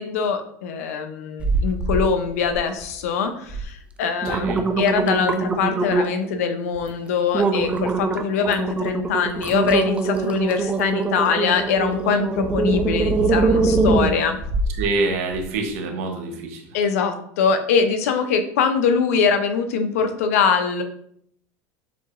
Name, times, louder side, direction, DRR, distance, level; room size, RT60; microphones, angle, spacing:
voice 1, 0.0-14.4 16.7-20.8, left 6 dB, 90° left, 7 dB, 0.6 m, -23 dB
sound 1, 1.4-2.1 2.4-2.9 3.5-3.6 4.0-6.3 6.8-6.9 7.3-14.8 15.3-15.4, right 3 dB, 15° right, 0.4 m, -23 dB
voice 2, 4.2-4.6 14.8-16.6, right 3 dB, 80° right, 3 dB, 1.0 m, -26 dB
6.9 x 2.8 x 2.5 m, 0.67 s
supercardioid pair, 125°, 8 cm